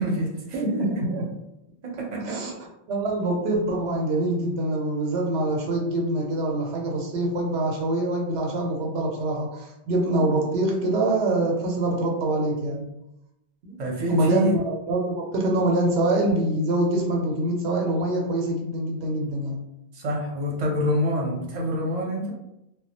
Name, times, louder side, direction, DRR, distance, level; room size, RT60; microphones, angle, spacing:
voice 1, 0.0-0.6 2.0-2.4 13.8-14.5 19.9-22.3, equal, 45° right, -1 dB, 0.6 m, -26 dB
voice 2, 0.5-1.3 2.2-2.5 2.9-12.9 13.6-13.8 14.1-19.6, right 2 dB, 90° right, -1 dB, 0.9 m, -25 dB
2.2 x 2.1 x 2.8 m, 0.88 s
omnidirectional pair, 1.1 m